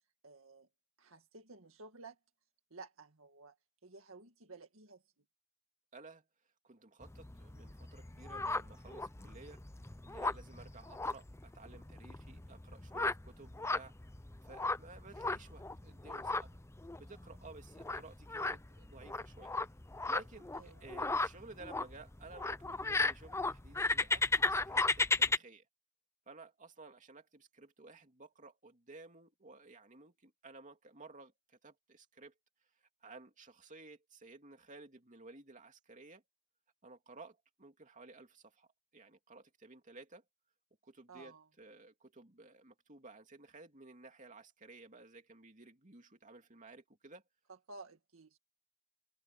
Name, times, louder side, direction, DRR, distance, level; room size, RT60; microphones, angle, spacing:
voice 1, 0.2-0.7 1.0-2.2 2.7-3.6 3.8-5.0 20.5-20.8 41.1-41.5 47.5-48.4, right 3 dB, 70° right, 2.0 m, -54 dB
voice 2, 5.9-6.2 6.6-9.6 10.0-14.0 14.4-16.6 17.0-19.5 20.0-25.6 26.3-32.3 33.0-36.2 36.8-38.7 38.9-40.2 40.8-47.2, right 3 dB, 35° right, 2.8 m, -55 dB
sound 1, 7.0-25.4, left 3 dB, 15° left, 0.7 m, -36 dB
head